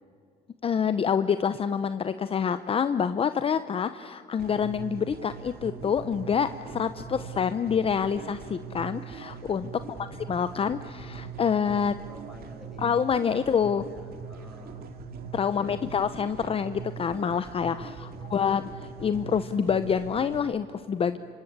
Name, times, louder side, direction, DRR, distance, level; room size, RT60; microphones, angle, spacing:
voice 1, 0.6-9.7 10.3-12.0 12.8-13.8 15.3-18.7 19.0-21.2, left 7 dB, 35° left, 12 dB, 0.8 m, -27 dB
sound 1, 4.4-20.4, right 6 dB, 60° right, 2.6 m, -41 dB
voice 2, 9.7-10.2 12.1-13.0 13.4-14.9 15.5-15.9 17.7-18.6, left 1 dB, ahead, 2 dB, 6.2 m, -50 dB
26.5 x 25.0 x 8.7 m, 2.3 s
cardioid pair, 110°, 17 cm